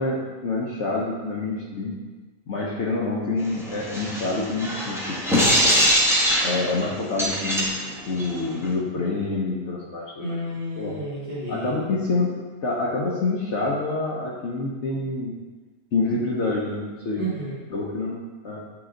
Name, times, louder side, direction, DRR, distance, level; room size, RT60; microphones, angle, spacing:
voice 1, 0.0-2.0 2.5-5.5 6.4-7.7 8.1-10.4 10.8-11.0 11.5-12.3 12.6-15.3 15.9-17.2 17.7-18.2 18.4-18.6, left 3 dB, 60° left, -4 dB, 1.0 m, -27 dB
sound 1, 3.4-8.7, equal, ahead, 0.7 m, -23 dB
voice 2, 10.2-11.8 17.1-17.6, right 1 dB, 45° right, -9 dB, 1.7 m, -31 dB
8.8 x 3.0 x 3.8 m, 1.3 s
omnidirectional pair, 1.5 m